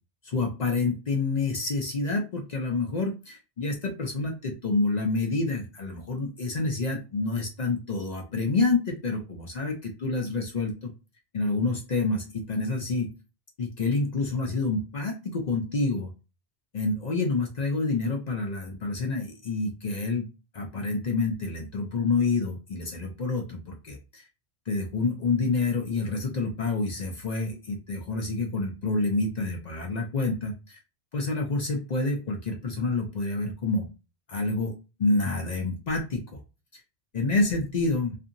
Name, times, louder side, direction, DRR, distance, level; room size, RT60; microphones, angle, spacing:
voice 1, 0.2-10.9 11.3-13.1 13.6-16.1 16.7-20.3 20.5-24.2 24.7-30.8 31.1-33.9 34.3-34.7 35.0-36.4 36.7-36.8 37.1-38.2, left 3 dB, 50° left, 2 dB, 0.5 m, -28 dB
2.7 x 2.5 x 2.5 m, 0.30 s
omnidirectional pair, 1.1 m